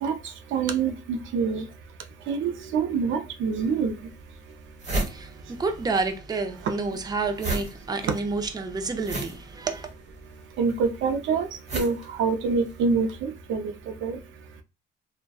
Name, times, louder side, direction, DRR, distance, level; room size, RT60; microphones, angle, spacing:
voice 1, 0.5-1.6 2.3-3.9 10.6-11.5 11.7-13.7 14.0-14.2, right 5 dB, 75° right, 0.4 m, -26 dB
sound 1, 3.6-3.7 4.2-4.3 4.5-6.1 6.3-12.9, right 2 dB, 35° right, 1.1 m, -33 dB
voice 2, 5.0-9.9, right 3 dB, 20° right, 0.4 m, -29 dB
2.6 x 2.2 x 2.2 m
cardioid pair, 90°, 20 cm